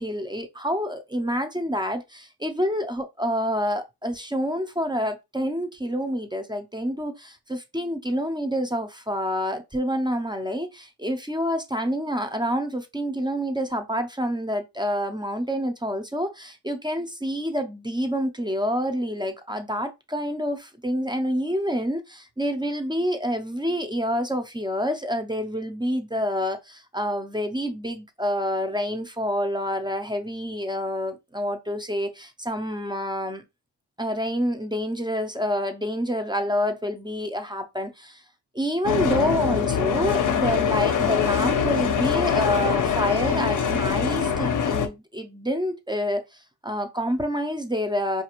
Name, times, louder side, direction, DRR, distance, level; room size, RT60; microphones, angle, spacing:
voice 1, 0.0-33.4 34.0-38.2 38.5-48.2, equal, 10° right, 0.3 m, -28 dB
sound 1, 38.8-44.9, left 7 dB, 50° left, 0.5 m, -23 dB
4.9 x 2.4 x 2.9 m
wide cardioid pair, 160°, 42 cm